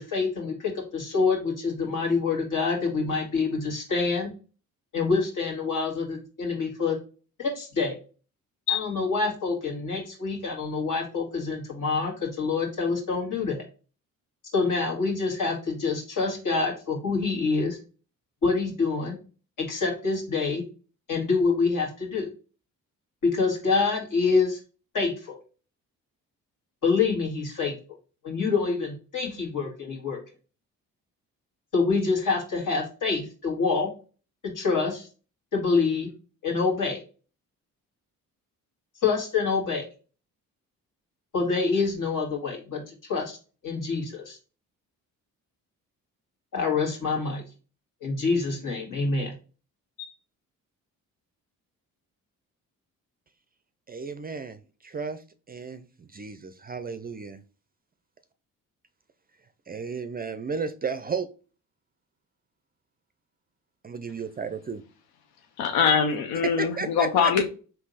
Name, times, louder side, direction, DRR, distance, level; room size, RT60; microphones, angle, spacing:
voice 1, 0.0-4.3 4.9-7.0 7.4-8.0 8.7-13.6 14.5-17.8 18.4-19.2 19.6-20.6 21.1-22.3 23.2-24.6 24.9-25.4 26.8-27.8 28.2-30.2 31.7-33.9 34.4-35.1 35.5-36.1 36.4-37.0 39.0-39.9 41.3-43.4 43.6-44.4 46.5-47.4 48.0-49.3 50.0-50.1, left 4 dB, 60° left, -1 dB, 1.9 m, -26 dB
voice 2, 53.9-57.4 59.7-61.3 63.8-64.8 66.4-67.4, right 5 dB, 25° right, 11 dB, 0.4 m, -33 dB
voice 3, 65.6-67.4, left 6 dB, 80° left, 5 dB, 0.7 m, -23 dB
3.6 x 2.8 x 4.0 m, 0.36 s
supercardioid pair, 60°, 36 cm